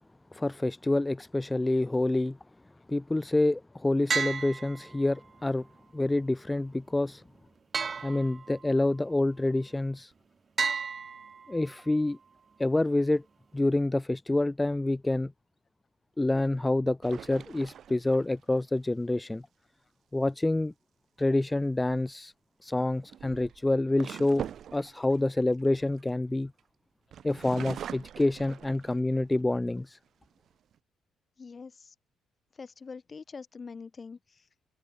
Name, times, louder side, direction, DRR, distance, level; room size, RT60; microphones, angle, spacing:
voice 1, 0.3-2.4 2.9-5.7 5.9-7.2 8.0-10.1 11.5-12.2 12.6-13.2 13.5-15.3 16.2-19.5 20.1-20.7 21.2-22.3 22.6-24.4 24.7-26.5 27.2-30.0, left 2 dB, 10° left, 1.5 m, -27 dB
sound 1, 4.1-5.3 7.7-8.8 10.6-11.8, right 5 dB, 35° right, 1.1 m, -33 dB
sound 2, 17.0-18.6 21.6-21.9 22.9-26.6 27.1-29.2 29.8-29.9 30.2-30.8, right 9 dB, 55° right, 2.2 m, -43 dB
voice 2, 31.4-31.9 32.5-34.5, left 5 dB, 30° left, 3.9 m, -44 dB
cardioid pair, 115°, 0 cm